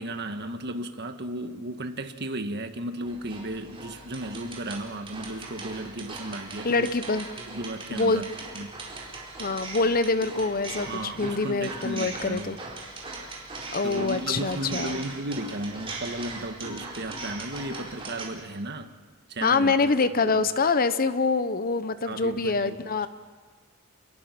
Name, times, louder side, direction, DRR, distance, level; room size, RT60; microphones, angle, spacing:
voice 1, 0.0-6.9 7.5-8.3 8.5-9.1 10.7-12.6 13.8-18.9 19.3-19.7 20.2-20.5 22.0-22.8, right 1 dB, 55° right, 7 dB, 1.6 m, -35 dB
sound 1, 3.0-18.2, right 3 dB, 25° right, 4.4 m, -40 dB
voice 2, 6.6-7.3 7.9-8.2 9.4-12.6 13.7-15.0 19.4-23.1, left 3 dB, 45° left, 12 dB, 0.9 m, -25 dB
29.0 x 21.5 x 6.0 m, 1.5 s
head